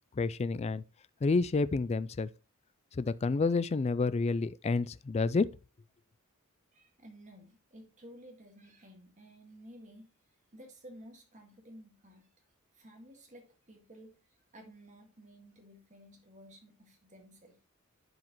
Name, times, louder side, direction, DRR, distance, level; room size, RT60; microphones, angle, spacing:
voice 1, 0.2-0.8 1.2-2.3 3.0-5.5, left 3 dB, 30° left, 0.3 m, -29 dB
voice 2, 6.7-10.1 10.5-12.3 12.7-17.6, equal, 35° right, 1.9 m, -54 dB
10.5 x 4.8 x 3.0 m
head